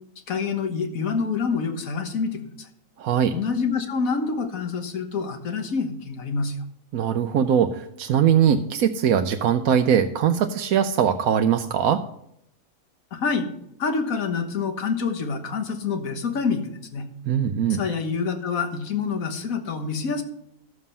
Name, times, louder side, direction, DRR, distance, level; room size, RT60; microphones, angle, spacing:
voice 1, 0.3-2.7 3.3-6.5 13.1-13.5 13.8-17.0 17.7-20.2, left 5 dB, 75° left, 6 dB, 1.7 m, -27 dB
voice 2, 3.0-3.3 6.9-12.0 17.3-17.8, right 8 dB, 80° right, 7 dB, 1.1 m, -21 dB
13.0 x 7.4 x 5.6 m, 0.75 s
omnidirectional pair, 1.5 m